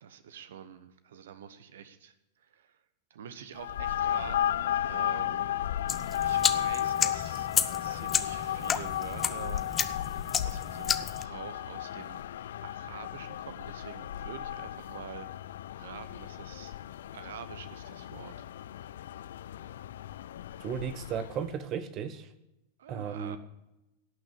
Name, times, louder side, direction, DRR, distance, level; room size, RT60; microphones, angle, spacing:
voice 1, 0.0-2.8 3.1-5.6 6.2-7.5 7.8-9.6 10.4-12.2 12.6-15.3 15.8-16.7 17.1-18.3 22.8-23.4, right 8 dB, 60° right, 12 dB, 1.0 m, -46 dB
sound 1, 3.6-21.5, left 11 dB, 60° left, 0.4 m, -34 dB
sound 2, 5.9-11.2, left 7 dB, 20° left, 0.7 m, -32 dB
voice 2, 20.6-22.3 22.9-23.4, right 7 dB, 35° right, 12 dB, 1.0 m, -35 dB
17.5 x 6.3 x 8.1 m, 0.91 s
figure-of-eight pair, 90°, 0 cm